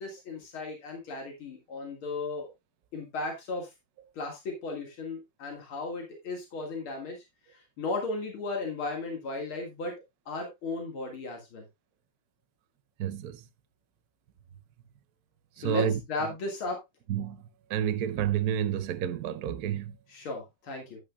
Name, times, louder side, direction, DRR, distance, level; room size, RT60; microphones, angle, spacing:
voice 1, 0.0-2.5 2.9-3.7 4.1-7.2 7.5-9.9 10.3-11.6 15.6-16.8 20.1-21.0, left 3 dB, 90° left, 2.8 m, -35 dB
voice 2, 13.0-13.4 15.6-16.0 17.1-17.4 17.7-20.0, right 9 dB, 65° right, 1.0 m, -29 dB
11.0 x 8.5 x 2.3 m
omnidirectional pair, 2.2 m